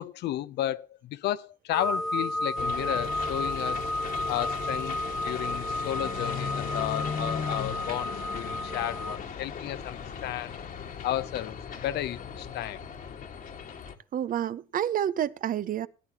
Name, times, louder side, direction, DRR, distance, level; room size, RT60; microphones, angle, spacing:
voice 1, 0.0-3.9 4.3-10.6 11.0-12.8, left 13 dB, 75° left, 0.7 m, -33 dB
sound 1, 1.7-9.2, left 1 dB, ahead, 0.9 m, -32 dB
sound 2, 2.6-13.9, left 7 dB, 55° left, 1.7 m, -37 dB
voice 2, 14.1-15.9, right 10 dB, 55° right, 0.7 m, -29 dB
17.5 x 9.6 x 2.9 m
supercardioid pair, 75°, 17 cm